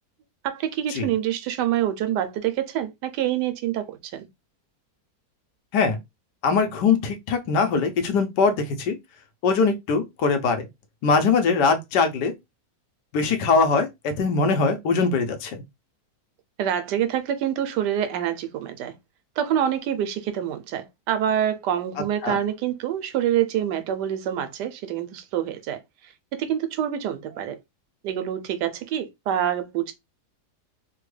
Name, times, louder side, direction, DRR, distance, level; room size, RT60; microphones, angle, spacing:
voice 1, 0.4-4.3 16.6-18.9 19.4-25.8 26.3-27.6 28.0-29.9, right 10 dB, 90° right, 1.2 m, -26 dB
voice 2, 6.4-8.9 9.4-10.7 11.0-12.3 13.1-15.6 22.2-22.4, left 4 dB, 85° left, 1.4 m, -22 dB
3.5 x 2.2 x 3.2 m
omnidirectional pair, 1.8 m